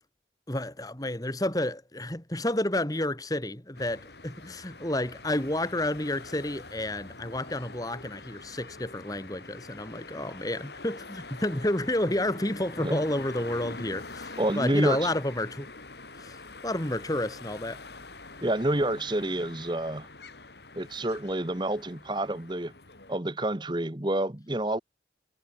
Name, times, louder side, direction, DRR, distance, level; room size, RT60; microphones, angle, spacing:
voice 1, 0.5-15.7 16.2-17.8, left 1 dB, 20° left, 2.1 m, -30 dB
sound 1, 3.7-23.2, left 3 dB, 70° left, 3.9 m, -45 dB
voice 2, 14.4-15.0 18.4-20.1 20.7-22.7 23.1-24.8, right 1 dB, 25° right, 1.3 m, -28 dB
head